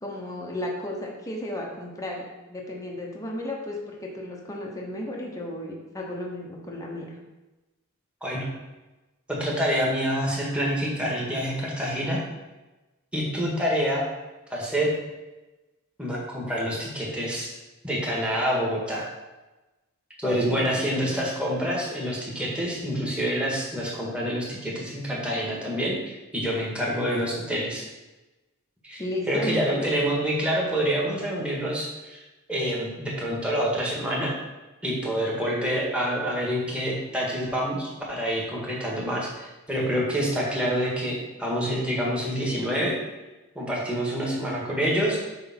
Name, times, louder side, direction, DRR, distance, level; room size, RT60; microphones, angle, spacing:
voice 1, 0.0-7.2 20.2-21.2 29.0-29.9, left 1 dB, 15° left, -2 dB, 1.0 m, -34 dB
voice 2, 9.3-12.2 13.1-14.1 14.5-14.9 16.0-17.5 17.8-19.1 20.2-27.9 28.8-29.0 29.3-32.2 32.5-34.3 34.8-42.9 43.6-45.2, equal, 5° right, -4 dB, 1.8 m, -27 dB
8.2 x 3.4 x 5.9 m, 1.1 s
head